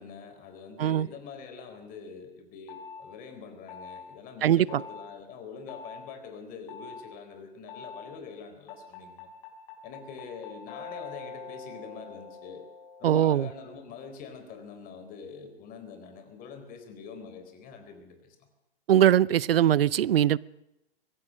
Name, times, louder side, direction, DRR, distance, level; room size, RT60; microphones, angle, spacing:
voice 1, 0.0-9.3 9.8-12.6 13.0-18.5, left 5 dB, 30° left, 7 dB, 4.0 m, -44 dB
sound 1, 2.7-3.0 3.7-4.1 4.7-5.1 5.7-6.0 6.7-7.0 7.7-8.1 8.7-13.8, left 5 dB, 55° left, 7.0 m, -44 dB
voice 2, 4.4-4.8 13.0-13.5 18.9-20.4, right 11 dB, 70° right, 24 dB, 0.6 m, -21 dB
24.5 x 17.5 x 6.4 m, 0.90 s
hypercardioid pair, 125°, 30 cm